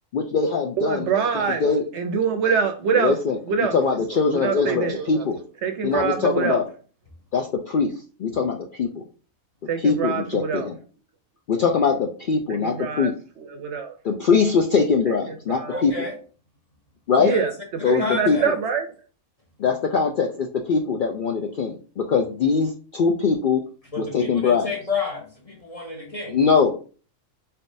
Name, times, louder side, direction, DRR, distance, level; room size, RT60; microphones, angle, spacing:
voice 1, 0.1-1.1 1.6-1.8 2.9-3.4 3.7-5.4 5.8-6.6 7.3-7.9 8.2-8.9 9.8-10.7 11.5-13.1 14.0-15.9 17.1-17.3 17.8-18.5 19.6-23.6 24.0-24.7 26.3-26.7, left 5 dB, 85° left, 3 dB, 0.4 m, -22 dB
voice 2, 0.8-3.1 3.5-5.2 5.6-6.6 9.7-10.7 12.5-13.1 13.4-14.0 15.1-15.8 17.2-17.5 17.9-18.9, right 6 dB, 65° right, 7 dB, 0.8 m, -25 dB
voice 3, 15.7-16.2 17.3-17.4 17.8-18.5 23.9-26.4, left 4 dB, 35° left, 1 dB, 0.6 m, -30 dB
4.1 x 3.4 x 2.6 m, 0.37 s
omnidirectional pair, 1.5 m